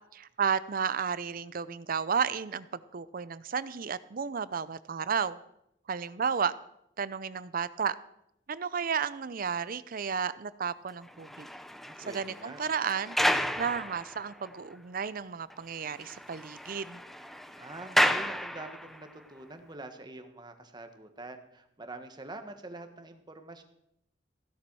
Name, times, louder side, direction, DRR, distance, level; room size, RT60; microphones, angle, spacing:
voice 1, 0.1-2.7 2.9-5.4 5.9-6.5 7.0-8.0 8.5-11.5 12.1-13.2 13.6-17.0, right 6 dB, 50° right, 16 dB, 0.5 m, -32 dB
sound 1, 11.0-14.5 15.0-15.1 15.5-15.6 15.9-19.1, equal, ahead, 0.5 m, -32 dB
voice 2, 11.8-12.6 17.6-23.6, right 2 dB, 25° right, 7 dB, 1.3 m, -45 dB
16.0 x 11.0 x 4.7 m, 0.78 s
head